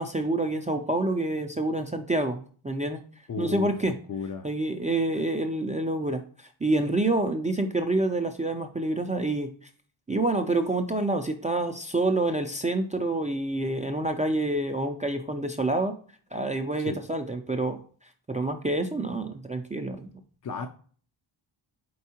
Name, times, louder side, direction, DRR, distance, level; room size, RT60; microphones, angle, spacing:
voice 1, 0.0-2.4 2.6-3.0 3.4-3.9 4.4-9.5 10.1-15.9 16.3-17.8 18.3-20.1, right 2 dB, 15° right, 5 dB, 0.3 m, -27 dB
voice 2, 3.3-4.5 16.8-17.0 20.4-20.7, left 5 dB, 40° left, 5 dB, 0.5 m, -34 dB
4.6 x 4.2 x 2.8 m, 0.44 s
wide cardioid pair, 105°, 49 cm